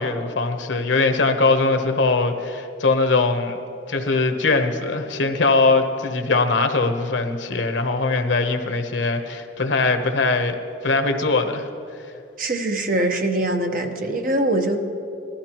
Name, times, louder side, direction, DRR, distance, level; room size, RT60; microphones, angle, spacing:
voice 1, 0.0-3.6 3.9-10.6 10.8-11.7, left 3 dB, 85° left, 6 dB, 1.0 m, -21 dB
voice 2, 12.4-14.8, right 1 dB, 50° right, 4 dB, 1.0 m, -23 dB
18.5 x 13.0 x 3.0 m, 2.8 s
head